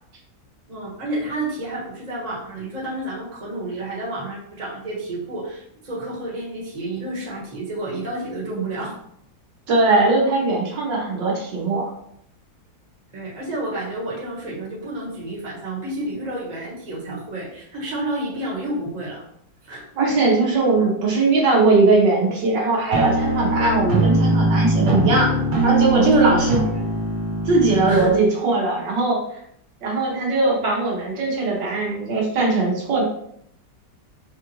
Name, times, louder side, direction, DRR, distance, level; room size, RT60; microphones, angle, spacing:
voice 1, 0.7-8.9 13.1-19.2 19.7-19.9 26.0-26.8 27.7-28.1, right 2 dB, 25° right, -5 dB, 1.2 m, -30 dB
voice 2, 9.7-11.8 20.0-25.3 25.6-26.6 27.4-29.4 29.8-33.0, right 3 dB, 75° right, -3 dB, 1.6 m, -19 dB
sound 1, 22.9-28.1, right 1 dB, 55° right, 1.3 m, -21 dB
5.3 x 2.4 x 3.0 m, 0.71 s
omnidirectional pair, 2.0 m